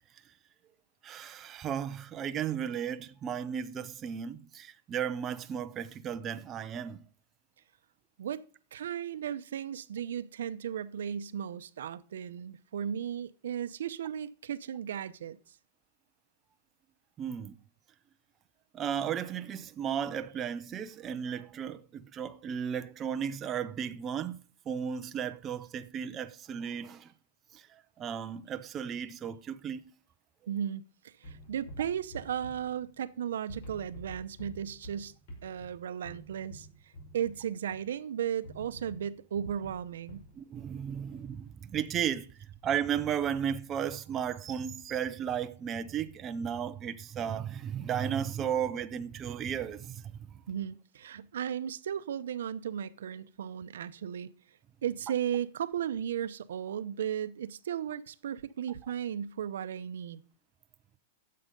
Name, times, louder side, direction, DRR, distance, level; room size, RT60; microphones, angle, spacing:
voice 1, 1.0-7.0 17.2-17.6 18.7-24.4 24.7-27.1 27.5-29.9 40.4-50.1, right 8 dB, 15° right, 0.5 m, -34 dB
voice 2, 8.7-15.5 30.5-35.1 35.4-36.7 37.1-40.2 50.5-54.3 54.8-60.2, right 9 dB, 85° right, 0.8 m, -35 dB
sound 1, 31.2-33.2 33.5-38.0 38.4-40.4, equal, 55° left, 5.8 m, -49 dB
12.5 x 7.7 x 5.4 m
supercardioid pair, 175°, 0 cm